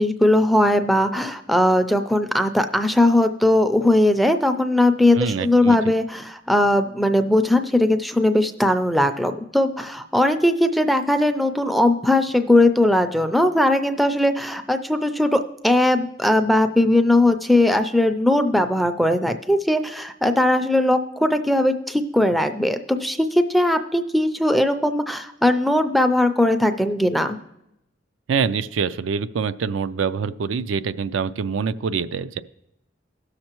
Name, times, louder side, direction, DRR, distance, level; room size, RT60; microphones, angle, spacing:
voice 1, 0.0-27.4, left 1 dB, ahead, 7 dB, 0.4 m, -19 dB
voice 2, 5.1-5.8 28.3-32.4, right 6 dB, 85° right, 13 dB, 0.4 m, -25 dB
16.5 x 6.6 x 3.0 m, 0.84 s
head